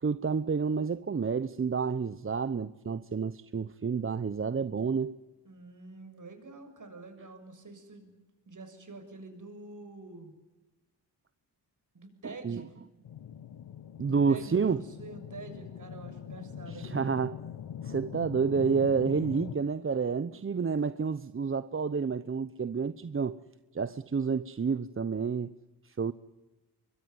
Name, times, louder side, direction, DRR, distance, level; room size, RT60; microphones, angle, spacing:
voice 1, 0.0-5.2 12.2-12.6 14.0-14.8 16.7-17.4 17.8-23.4 23.7-25.5 25.8-26.1, right 5 dB, 30° right, 0.8 m, -29 dB
voice 2, 5.4-8.1 8.5-10.3 11.9-12.7 14.0-17.2, right 3 dB, 45° right, 7.0 m, -46 dB
sound 1, 13.0-19.6, left 9 dB, 75° left, 1.2 m, -42 dB
25.0 x 22.5 x 9.5 m
cardioid pair, 70°, 42 cm